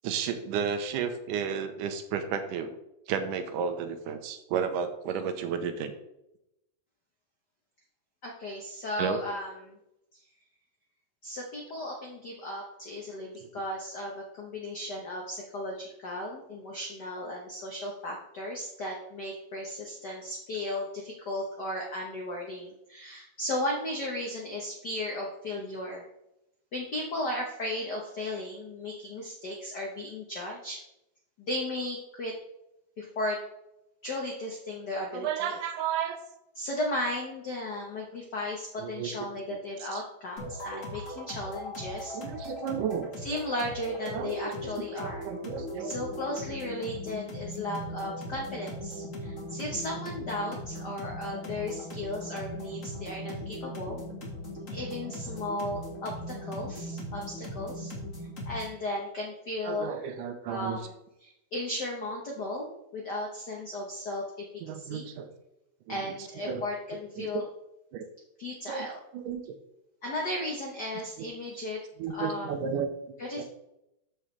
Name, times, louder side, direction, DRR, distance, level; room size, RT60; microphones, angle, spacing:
voice 1, 0.0-2.8 3.1-5.9 9.0-9.2 35.1-36.2 38.8-39.1 39.9-40.0 42.1-43.1 44.1-44.3 45.0-45.9 46.2-46.3 59.6-60.8 64.6-65.3 65.9-66.0 66.5-66.6 67.2-67.3 67.9-68.1 68.7-68.9 69.1-69.6 71.2-71.3 72.0-72.9 73.4-73.5, right 7 dB, 85° right, 8 dB, 2.3 m, -32 dB
voice 2, 8.2-9.8 11.2-26.0 26.7-30.8 31.4-32.3 33.0-33.4 34.0-35.6 36.5-42.2 43.2-45.3 45.8-54.0 54.7-57.9 58.5-60.0 60.5-60.9 61.2-65.1 65.9-67.4 68.4-69.0 70.0-71.8 72.1-72.5 73.2-73.4, left 1 dB, 90° left, -1 dB, 0.9 m, -35 dB
sound 1, 40.4-58.8, left 1 dB, 30° left, 1.8 m, -39 dB
13.5 x 4.9 x 3.3 m, 0.85 s
omnidirectional pair, 3.7 m